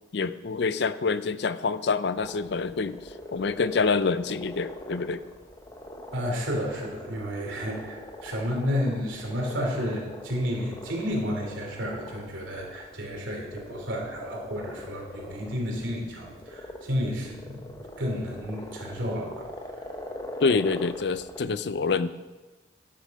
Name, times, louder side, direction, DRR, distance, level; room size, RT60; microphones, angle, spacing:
voice 1, 0.1-3.0 3.3-5.2 20.4-22.1, left 4 dB, 60° left, 14 dB, 0.5 m, -26 dB
sound 1, 2.1-21.4, left 1 dB, 20° left, 0.9 m, -42 dB
voice 2, 6.1-19.5, equal, 85° right, 0 dB, 2.9 m, -31 dB
12.0 x 8.3 x 5.2 m, 1.2 s
head